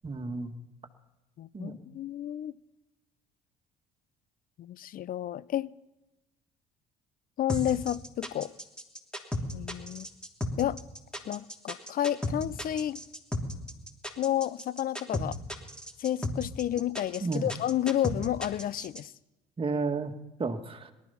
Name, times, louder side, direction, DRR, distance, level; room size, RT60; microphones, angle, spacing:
voice 1, 0.0-0.5 1.5-1.8 17.2-17.5 19.6-20.1 20.4-20.9, right 4 dB, 30° right, 1.8 m, -32 dB
voice 2, 1.4-2.5 4.6-5.7 7.4-8.5 9.5-10.1 10.6-10.8 11.3-13.0 14.2-15.4 16.0-19.1, left 11 dB, 55° left, 0.6 m, -31 dB
sound 1, 7.5-19.0, left 1 dB, 5° left, 3.1 m, -34 dB
18.5 x 12.5 x 5.7 m
hypercardioid pair, 65°, 18 cm